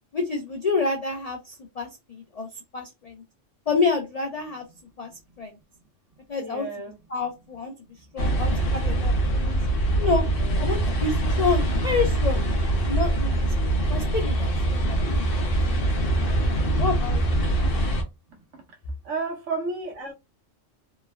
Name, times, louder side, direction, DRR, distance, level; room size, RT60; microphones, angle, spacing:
voice 1, 0.1-3.2 3.7-4.6 5.0-5.1 5.4-5.5 6.3-6.7 7.1-7.7 8.0-9.7 10.0-10.2 10.6-12.5 12.8-15.2 15.6-16.3 16.8-17.4, left 4 dB, 75° left, 0.3 m, -28 dB
voice 2, 6.4-7.0 10.4-10.7 18.3-18.8 19.0-20.1, right 3 dB, 75° right, 1.1 m, -33 dB
sound 1, 8.2-18.0, right 1 dB, 55° left, 0.9 m, -23 dB
3.2 x 2.1 x 2.3 m
omnidirectional pair, 1.3 m